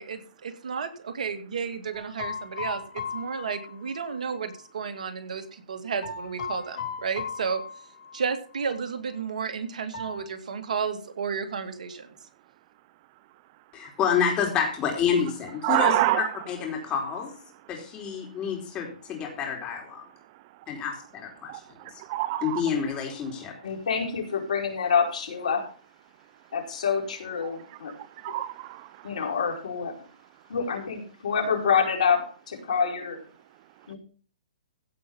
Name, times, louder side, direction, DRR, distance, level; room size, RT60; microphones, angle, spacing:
voice 1, 0.0-7.6 8.1-12.1, right 6 dB, 70° right, 2.3 m, -32 dB
sound 1, 1.9-4.6 6.0-8.3 8.6-8.7 9.9-10.2, left 6 dB, 50° left, 4.2 m, -37 dB
voice 2, 13.7-16.0 16.5-17.3 17.7-20.1 20.7-22.0 22.4-23.5, left 7 dB, 20° left, 4.5 m, -28 dB
voice 3, 15.6-16.3 20.3-20.4 21.5-22.6 27.4-29.0, right 16 dB, 35° right, 0.4 m, -28 dB
voice 4, 23.6-25.6 26.5-27.9 29.0-29.9 30.5-32.2 32.7-33.2 33.9-34.0, left 6 dB, 65° left, 5.0 m, -26 dB
16.0 x 6.1 x 5.4 m
hypercardioid pair, 145°, 4 cm